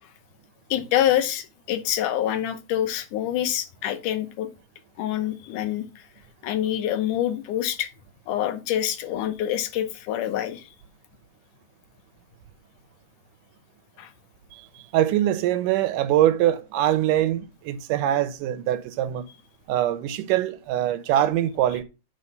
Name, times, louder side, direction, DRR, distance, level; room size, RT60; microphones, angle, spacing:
voice 1, 0.7-4.5 5.0-5.9 6.4-7.9 8.3-10.6 14.0-14.1, left 11 dB, 80° left, 2.4 m, -26 dB
voice 2, 14.9-19.3 19.7-21.8, right 12 dB, 85° right, 2.3 m, -23 dB
9.6 x 4.0 x 5.3 m
omnidirectional pair, 3.6 m